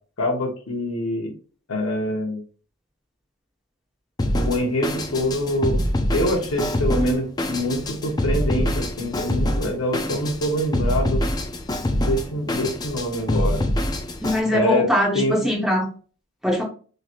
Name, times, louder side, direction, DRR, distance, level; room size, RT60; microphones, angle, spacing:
voice 1, 0.2-1.3 1.7-2.4 4.3-5.8 6.1-11.2 11.9-13.6 14.5-14.9 15.1-15.4, equal, 70° left, 2 dB, 0.8 m, -25 dB
Drum kit, 4.2-14.4, left 1 dB, 20° left, 0.3 m, -25 dB
voice 2, 14.2-15.8 16.4-16.6, left 1 dB, ahead, -3 dB, 0.8 m, -21 dB
3.1 x 2.8 x 2.4 m, 0.39 s
head